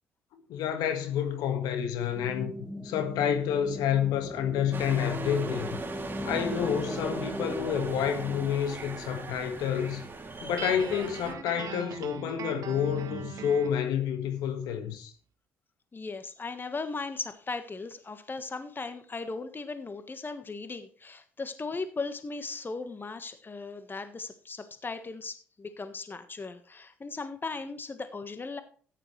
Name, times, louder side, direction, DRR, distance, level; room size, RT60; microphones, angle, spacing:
voice 1, 0.3-2.5 2.8-5.8 6.2-10.0 10.4-15.1, left 9 dB, 70° left, 1.8 m, -29 dB
sound 1, 2.1-8.5, equal, 5° right, 1.8 m, -39 dB
sound 2, 4.7-11.3, right 3 dB, 30° right, 2.8 m, -39 dB
Guitar, 10.6-13.8, right 8 dB, 55° right, 1.7 m, -40 dB
voice 2, 15.9-28.6, left 3 dB, 30° left, 1.5 m, -37 dB
14.0 x 10.0 x 3.3 m
hypercardioid pair, 50°, 7 cm